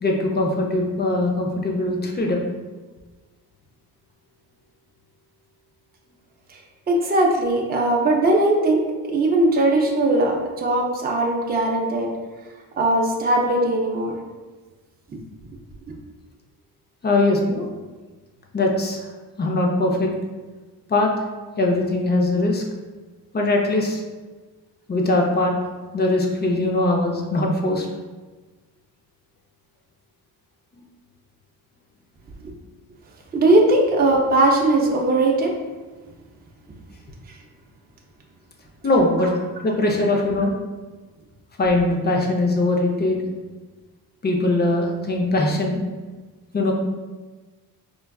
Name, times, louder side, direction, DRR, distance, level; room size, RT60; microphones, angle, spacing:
voice 1, 0.0-2.4 17.0-17.7 18.5-19.0 19.4-20.1 20.9-21.1 21.6-22.6 23.3-24.0 24.9-25.5 25.9-27.9 38.8-40.5 41.6-43.2 44.2-45.8 46.5-46.7, left 2 dB, 25° left, 1 dB, 0.6 m, -21 dB
voice 2, 6.9-12.1 12.8-14.1 32.4-32.5 33.3-35.5 37.3-37.4, right 2 dB, 25° right, 0 dB, 0.5 m, -19 dB
4.5 x 2.3 x 2.3 m, 1.3 s
cardioid pair, 90°, 40 cm